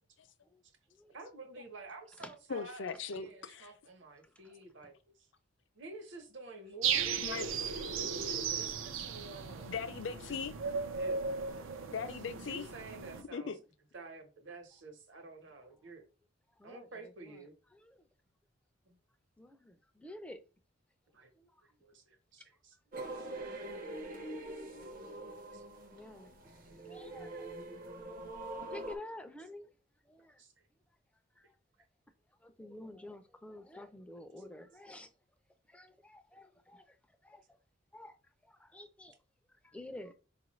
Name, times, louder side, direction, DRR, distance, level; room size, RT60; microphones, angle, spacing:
voice 1, 1.1-4.9 5.7-9.7 11.0-11.7 12.3-13.5 13.9-16.1 16.6-17.5 18.9-19.0 21.1-21.3 21.8-22.7 23.4-23.5 23.9-24.0 25.5-25.6 30.4-30.5, right 3 dB, 65° right, 1.0 m, -50 dB
voice 2, 2.5-3.7 7.2-7.5 9.7-10.5 11.9-12.7 13.3-13.6, left 5 dB, 65° left, 0.5 m, -39 dB
voice 3, 4.2-4.9 6.6-6.7 7.3-7.6 11.5-11.9 13.4-13.6 16.5-18.1 19.4-20.4 21.4-21.7 22.4-22.5 25.9-26.3 26.8-27.5 28.5-29.7 30.0-30.4 31.4-31.6 32.4-35.1 35.7-37.6 37.9-38.2 38.4-39.2 39.5-40.1, left 1 dB, 5° left, 0.4 m, -51 dB
sound 1, 6.8-13.2, right 6 dB, 85° right, 0.5 m, -36 dB
sound 2, 22.9-29.0, right 2 dB, 45° right, 0.6 m, -44 dB
4.6 x 2.4 x 3.0 m
head